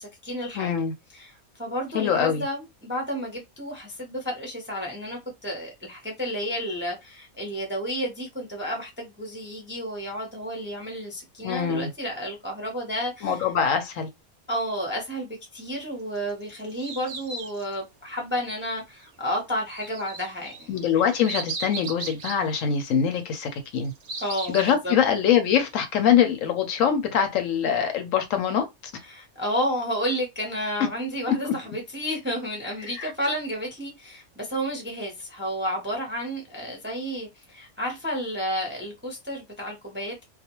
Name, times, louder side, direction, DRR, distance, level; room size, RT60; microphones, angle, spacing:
voice 1, 0.0-0.8 1.1-13.4 14.5-20.7 24.2-24.9 29.0-40.2, equal, 10° right, 0.5 m, -31 dB
voice 2, 0.5-0.9 1.9-2.4 11.4-11.9 13.2-14.1 20.7-23.9 24.5-28.7 31.4-31.5 33.0-33.1, left 8 dB, 70° left, 0.9 m, -23 dB
sound 1, 16.2-17.7 19.7-22.4 23.5-24.7, right 4 dB, 55° right, 0.7 m, -36 dB
2.4 x 2.2 x 2.9 m
omnidirectional pair, 1.5 m